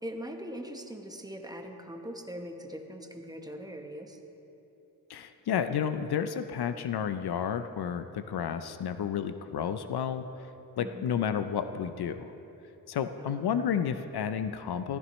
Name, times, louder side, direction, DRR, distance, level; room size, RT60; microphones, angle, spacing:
voice 1, 0.0-4.2 10.8-11.1 13.2-13.5, equal, 10° right, 4 dB, 1.0 m, -41 dB
voice 2, 5.1-10.5 10.8-12.3 12.9-15.0, left 8 dB, 70° left, 10 dB, 0.6 m, -31 dB
14.0 x 14.0 x 3.1 m, 3.0 s
cardioid pair, 80°, 40 cm